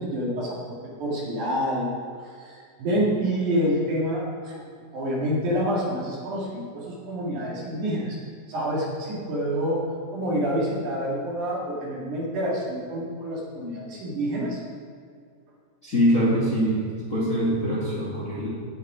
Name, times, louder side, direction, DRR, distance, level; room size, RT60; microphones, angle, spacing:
voice 1, 0.0-1.9 2.4-4.6 4.9-8.2 8.5-9.8 10.1-14.6, equal, 60° right, -4 dB, 3.3 m, -27 dB
voice 2, 15.8-16.8 17.1-18.5, equal, 30° left, -7 dB, 1.7 m, -23 dB
17.0 x 6.5 x 4.9 m, 2.2 s
omnidirectional pair, 4.3 m